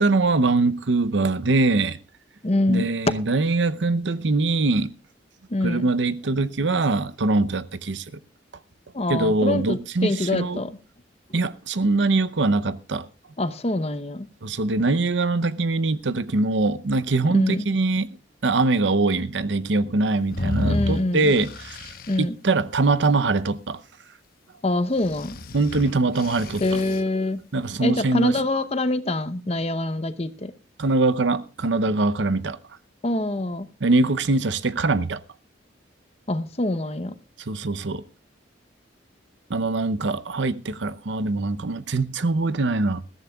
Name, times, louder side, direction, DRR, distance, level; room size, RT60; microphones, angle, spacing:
voice 1, 0.0-2.0 2.7-4.9 5.6-8.0 9.1-10.6 11.3-13.1 14.4-18.2 18.4-23.8 25.5-26.6 27.5-28.4 30.8-32.6 33.8-35.2 37.5-38.0 39.5-43.0, right 3 dB, 75° right, 0.7 m, -23 dB
voice 2, 2.4-2.9 5.5-5.9 8.9-10.7 13.4-14.3 17.3-17.7 20.6-21.3 22.1-22.3 24.6-25.4 26.6-27.4 27.8-30.5 33.0-33.7 36.3-37.1, left 2 dB, 35° left, 0.9 m, -25 dB
sound 1, 20.3-22.2 25.0-27.0, left 2 dB, 50° left, 1.1 m, -30 dB
21.0 x 14.0 x 2.4 m
head